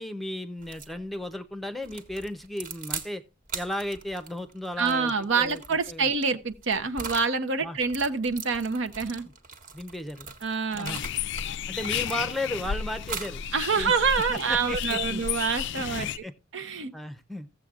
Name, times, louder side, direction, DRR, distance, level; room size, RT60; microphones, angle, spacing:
voice 1, 0.0-3.2 3.5-5.6 5.9-6.1 7.6-7.8 9.7-10.3 10.7-11.0 11.7-13.4 13.7-13.9 14.3-15.2 16.0-16.3 16.9-17.5, left 1 dB, ahead, 0.7 m, -34 dB
sound 1, 0.6-1.0 1.8-3.1 3.5-7.3 7.8-11.5 11.8-12.6 13.0-13.4 13.9-16.0, right 5 dB, 45° right, 1.5 m, -41 dB
voice 2, 4.8-9.3 10.4-11.0 13.5-16.0 16.5-16.9, right 5 dB, 65° right, 0.9 m, -26 dB
sound 2, 10.8-16.2, left 9 dB, 60° left, 0.4 m, -32 dB
15.5 x 7.7 x 2.4 m
head